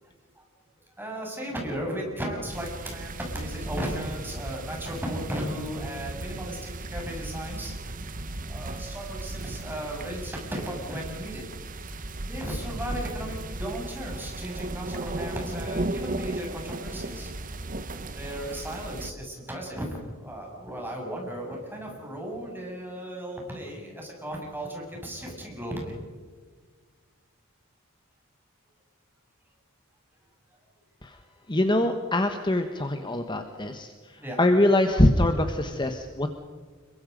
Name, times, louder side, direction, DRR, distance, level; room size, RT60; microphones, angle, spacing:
voice 1, 1.0-11.4 12.2-17.3 18.1-25.9 34.2-34.4, equal, 10° right, -1 dB, 6.9 m, -35 dB
sound 1, 2.5-19.1, right 2 dB, 40° right, 1.1 m, -36 dB
voice 2, 31.5-36.3, left 1 dB, 20° left, 6 dB, 1.3 m, -24 dB
26.5 x 23.5 x 5.3 m, 1.5 s
head